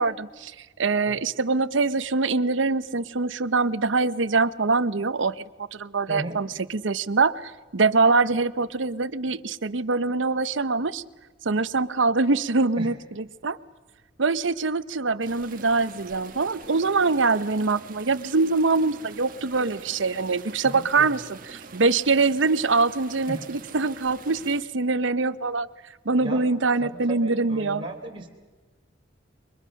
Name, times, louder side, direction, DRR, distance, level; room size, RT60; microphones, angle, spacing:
voice 1, 0.0-11.0 11.4-13.6 14.2-25.7 26.0-27.8, right 3 dB, 85° right, 14 dB, 0.9 m, -24 dB
voice 2, 6.1-6.4 12.8-12.9 20.6-21.2 23.3-23.5 26.1-26.5 26.8-28.3, right 1 dB, 25° right, 0 dB, 4.0 m, -36 dB
sound 1, 15.2-24.6, right 4 dB, 50° right, 1.6 m, -45 dB
29.0 x 23.5 x 6.5 m, 1.3 s
head